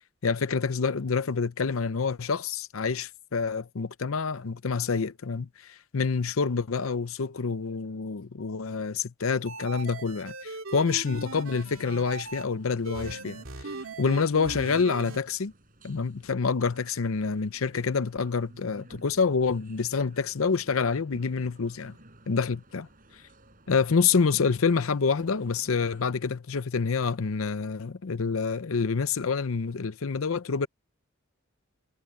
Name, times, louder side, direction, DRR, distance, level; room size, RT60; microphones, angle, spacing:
voice 1, 0.2-15.5 15.8-21.9 22.3-22.9 23.7-30.7, left 5 dB, 85° left, 0.7 m, -27 dB
sound 1, 9.5-12.4 12.8-15.2, right 3 dB, 85° right, 2.5 m, -39 dB
sound 2, 11.2-26.1, right 1 dB, 45° right, 8.0 m, -56 dB
head